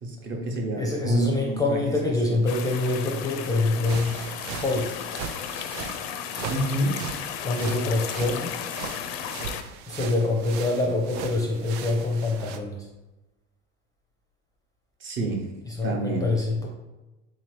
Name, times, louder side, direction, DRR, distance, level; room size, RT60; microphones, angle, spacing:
voice 1, 0.0-1.9 2.3-2.4 6.5-7.0 15.0-15.5 15.8-16.2, right 2 dB, 40° right, 1 dB, 0.8 m, -28 dB
voice 2, 0.8-4.2 4.5-5.0 7.4-8.7 9.9-12.9 15.6-16.7, left 2 dB, 10° left, -1 dB, 0.5 m, -25 dB
sound 1, 2.5-9.6, left 9 dB, 70° left, 0.5 m, -34 dB
sound 2, 3.9-12.6, right 7 dB, 65° right, 0.5 m, -38 dB
3.8 x 2.8 x 3.2 m, 1.0 s
supercardioid pair, 110°, 31 cm